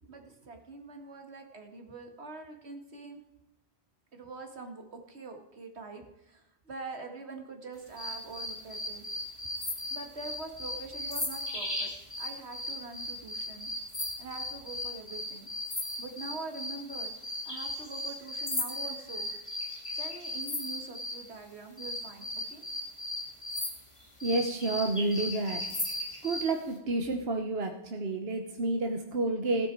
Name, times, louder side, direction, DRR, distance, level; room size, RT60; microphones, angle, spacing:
voice 1, 0.0-3.2 4.1-9.1 9.9-11.9 12.2-13.7 14.2-15.5 16.0-17.1 17.5-19.3 19.9-22.6, right 3 dB, 85° right, 4 dB, 2.1 m, -44 dB
sound 1, 8.0-21.2 21.8-26.5, left 1 dB, 30° left, 2.3 m, -36 dB
voice 2, 24.2-25.6 26.2-29.7, right 2 dB, 70° right, 4 dB, 1.4 m, -30 dB
16.5 x 9.2 x 4.7 m, 0.94 s
omnidirectional pair, 1.1 m